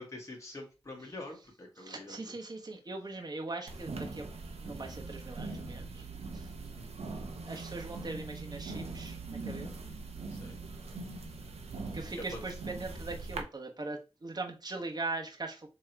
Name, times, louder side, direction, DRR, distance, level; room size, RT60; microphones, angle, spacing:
voice 1, 0.0-2.3 6.7-6.9 10.3-10.6 12.2-12.4, left 1 dB, 30° left, -1 dB, 1.6 m, -45 dB
voice 2, 1.8-4.3 4.6-6.1 6.3-6.5 7.4-9.7 11.9-15.7, right 2 dB, 40° right, 2 dB, 1.1 m, -40 dB
sound 1, 3.7-13.4, right 3 dB, 80° right, 0.8 m, -42 dB
3.6 x 3.0 x 4.5 m, 0.30 s
cardioid pair, 50°, 11 cm